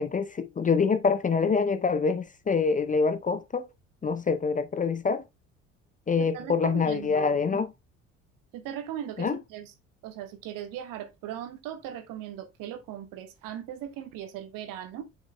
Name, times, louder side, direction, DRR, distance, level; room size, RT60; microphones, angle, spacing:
voice 1, 0.0-3.7 4.0-5.2 6.1-7.7 9.2-9.4, left 5 dB, 20° left, 0.6 m, -25 dB
voice 2, 6.2-7.6 8.5-9.7 10.0-15.0, right 10 dB, 60° right, 1.5 m, -38 dB
9.2 x 6.2 x 2.2 m
figure-of-eight pair, 55°, 37 cm